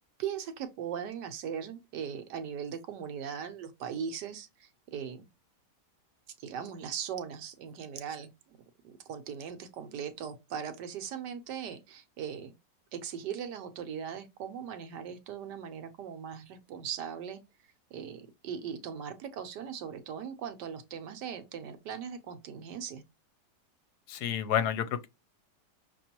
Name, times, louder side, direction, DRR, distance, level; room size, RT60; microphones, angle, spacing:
voice 1, 0.2-5.3 6.4-8.6 8.8-12.6 12.9-17.4 17.9-23.0, right 8 dB, 75° right, 1.4 m, -39 dB
voice 2, 24.1-25.1, left 9 dB, 75° left, 1.1 m, -29 dB
6.1 x 3.0 x 2.9 m
omnidirectional pair, 1.9 m